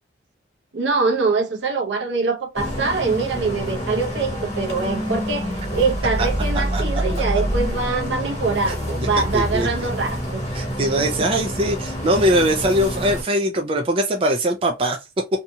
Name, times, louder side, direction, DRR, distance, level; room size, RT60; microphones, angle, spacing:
voice 1, 0.7-10.4 10.8-11.3, right 4 dB, 70° right, 0.7 m, -24 dB
sound 1, 2.5-13.2, equal, 35° left, 1.2 m, -27 dB
voice 2, 9.3-9.7 10.5-15.0, equal, 30° right, 0.3 m, -21 dB
2.7 x 2.7 x 2.2 m
head